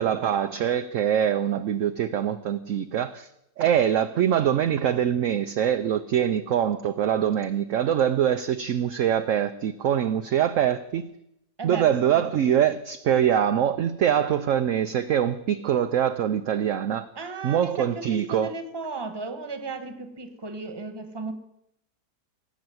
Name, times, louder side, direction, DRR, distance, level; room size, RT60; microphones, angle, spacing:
voice 1, 0.0-3.3 3.6-11.1 11.6-17.1 17.4-18.5, right 9 dB, 60° right, 0.9 m, -24 dB
voice 2, 11.6-12.2 17.1-21.3, right 4 dB, 15° right, 1.3 m, -35 dB
18.5 x 8.4 x 7.8 m
omnidirectional pair, 1.8 m